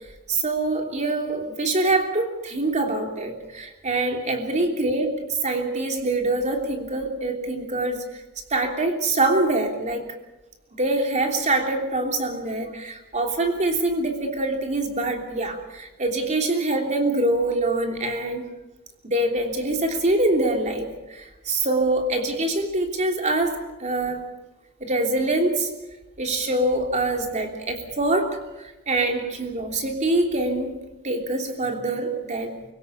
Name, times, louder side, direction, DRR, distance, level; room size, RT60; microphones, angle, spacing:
voice 1, 0.3-8.2 8.5-10.0 10.8-18.5 19.0-24.3 24.8-25.7 26.2-30.8 31.0-32.5, right 2 dB, 35° right, 3 dB, 3.1 m, -24 dB
25.0 x 16.5 x 7.1 m, 1.0 s
head